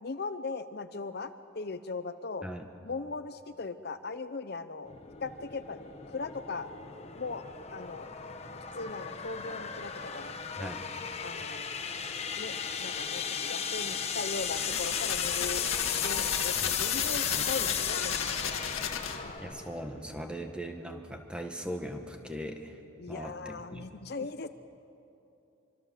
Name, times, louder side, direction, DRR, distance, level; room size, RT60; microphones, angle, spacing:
voice 1, 0.0-2.5 2.8-4.9 5.2-5.8 6.1-6.7 7.1-7.4 7.7-8.1 8.8-10.3 10.6-10.7 11.2-11.7 12.4-15.7 16.0-18.7 23.0-24.5, left 4 dB, 50° left, 11 dB, 0.7 m, -39 dB
sound 1, 4.9-20.3, left 7 dB, 30° left, 1.2 m, -35 dB
voice 2, 10.6-10.9 16.5-16.8 17.2-17.5 19.4-22.8 23.1-23.9, equal, 5° right, 4 dB, 1.6 m, -40 dB
sound 2, 14.4-19.4, left 7 dB, 85° left, 1.7 m, -35 dB
24.5 x 24.0 x 7.7 m, 2.8 s
head